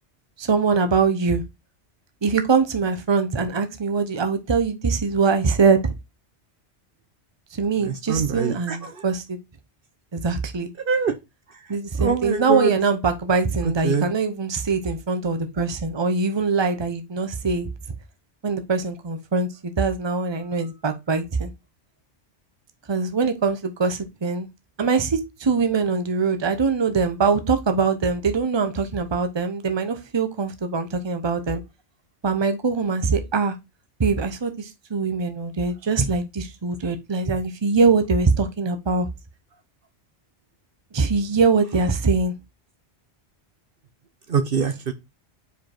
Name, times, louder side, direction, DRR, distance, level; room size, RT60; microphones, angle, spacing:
voice 1, 0.4-1.4 2.2-5.9 7.5-9.4 10.1-10.7 11.7-17.7 18.4-21.5 22.9-24.5 24.8-31.6 32.2-33.5 34.0-39.1 40.9-42.3, right 4 dB, 25° right, 0.8 m, -22 dB
voice 2, 8.1-8.8 10.9-11.1 12.0-12.7 13.8-14.0 44.3-44.9, right 6 dB, 55° right, 0.9 m, -23 dB
5.1 x 4.9 x 4.4 m
omnidirectional pair, 1.2 m